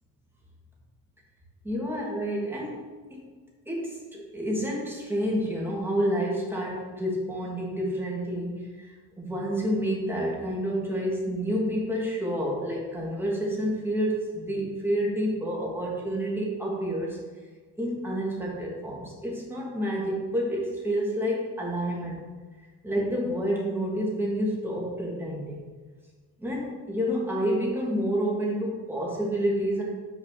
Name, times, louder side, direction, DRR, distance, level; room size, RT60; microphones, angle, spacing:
voice 1, 1.6-2.8 3.1-3.2 3.7-17.2 17.8-22.2 22.8-25.7 26.4-29.8, equal, 5° right, -4 dB, 2.4 m, -29 dB
6.5 x 4.9 x 6.7 m, 1.4 s
cardioid pair, 125°, 38 cm